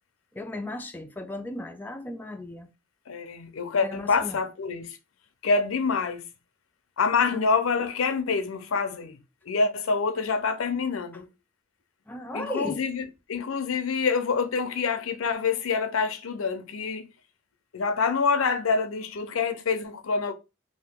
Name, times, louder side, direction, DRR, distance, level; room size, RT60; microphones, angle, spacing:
voice 1, 0.4-2.7 3.9-4.4 12.1-12.8, left 1 dB, 10° left, 0.3 m, -35 dB
voice 2, 3.1-5.0 5.4-6.2 7.0-9.2 9.4-11.3 12.3-17.1 17.7-20.3, left 5 dB, 85° left, 0.5 m, -26 dB
2.8 x 2.6 x 3.5 m
head